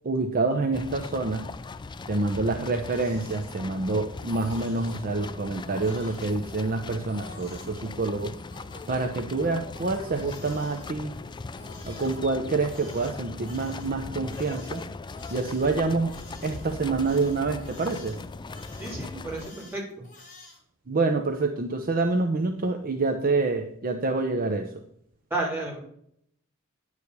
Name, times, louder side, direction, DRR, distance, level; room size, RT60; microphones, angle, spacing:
voice 1, 0.0-1.5 2.1-8.4 8.9-11.1 11.9-14.8 15.3-16.2 16.4-18.2 20.9-24.8, right 3 dB, 40° right, 5 dB, 0.7 m, -27 dB
sound 1, 0.7-19.5, left 3 dB, 20° left, 0.3 m, -39 dB
Crying sobbing, 2.5-3.9 4.2-5.0 5.5-7.7 8.3-12.2 12.6-20.6, left 3 dB, 35° left, 3.2 m, -50 dB
voice 2, 18.8-20.0 25.3-25.8, right 2 dB, 10° right, -5 dB, 3.6 m, -32 dB
9.9 x 4.9 x 6.7 m, 0.69 s
head